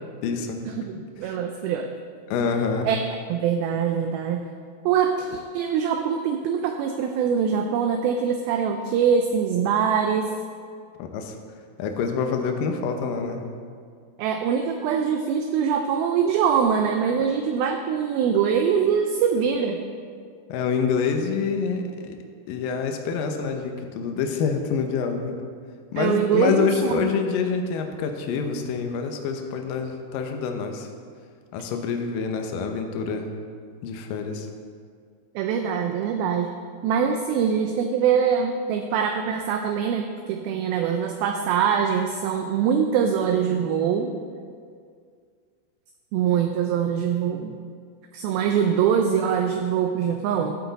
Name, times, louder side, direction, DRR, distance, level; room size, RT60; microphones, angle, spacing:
voice 1, 0.2-0.7 1.2-1.4 2.3-2.9 11.0-11.3 11.8-13.5 20.5-22.2 22.5-25.4 25.9-30.9 31.5-33.3 33.8-34.5, left 5 dB, 75° left, 4 dB, 2.1 m, -26 dB
voice 2, 0.8-1.9 2.9-3.0 3.3-4.5 4.9-10.3 14.2-19.8 26.0-27.1 35.4-36.5 36.8-44.1 46.1-47.6 48.1-50.6, right 7 dB, 85° right, 5 dB, 2.2 m, -23 dB
13.5 x 8.3 x 4.0 m, 2.1 s
omnidirectional pair, 4.8 m